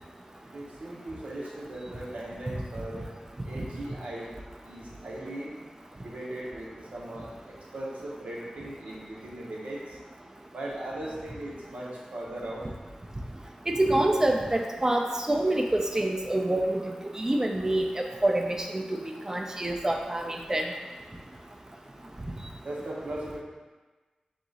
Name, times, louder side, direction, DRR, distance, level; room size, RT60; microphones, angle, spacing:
voice 1, 0.5-3.1 3.4-4.3 4.7-5.5 6.0-10.0 10.5-12.7 22.6-23.4, right 1 dB, 90° right, -4 dB, 0.9 m, -38 dB
voice 2, 13.7-17.9 18.2-19.0 19.3-20.6, right 1 dB, 25° right, 2 dB, 0.5 m, -26 dB
3.6 x 3.0 x 4.0 m, 1.3 s
wide cardioid pair, 80°, 2 cm